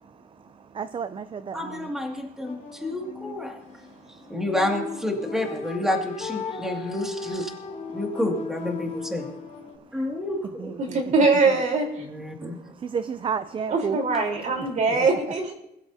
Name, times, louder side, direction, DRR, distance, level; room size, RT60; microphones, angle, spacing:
voice 1, 0.7-1.9 10.6-11.0 11.5-11.6 12.8-14.0 15.0-15.1, right 6 dB, 30° right, 13 dB, 0.5 m, -31 dB
voice 2, 1.5-3.6 4.3-7.5 7.9-9.3 9.9-10.7 12.0-12.6, left 1 dB, 5° right, 1 dB, 2.3 m, -29 dB
sound 1, 2.5-9.8, left 5 dB, 40° left, 2.6 m, -36 dB
voice 3, 10.8-11.9 12.4-12.5 13.7-15.5, right 3 dB, 50° right, 1 dB, 4.1 m, -22 dB
21.5 x 13.0 x 2.8 m, 0.84 s
cardioid pair, 110°, 17 cm